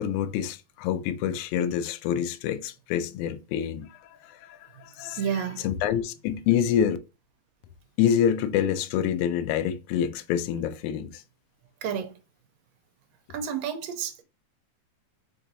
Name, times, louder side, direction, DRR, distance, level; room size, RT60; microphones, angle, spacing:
voice 1, 0.0-7.0 8.0-11.2, left 9 dB, 80° left, 1.4 m, -27 dB
voice 2, 5.2-5.6 11.8-12.1 13.3-14.2, right 8 dB, 75° right, 1.8 m, -30 dB
4.6 x 3.8 x 2.7 m
omnidirectional pair, 3.3 m